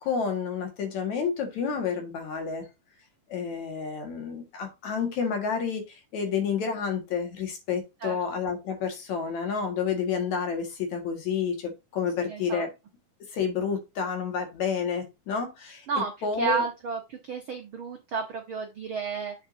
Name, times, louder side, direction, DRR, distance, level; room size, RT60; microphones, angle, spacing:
voice 1, 0.0-2.7 3.3-12.7 13.3-16.6, left 6 dB, 60° left, 2.8 m, -30 dB
voice 2, 12.3-12.6 15.9-19.3, right 5 dB, 80° right, 1.1 m, -32 dB
8.2 x 6.3 x 2.7 m
omnidirectional pair, 4.2 m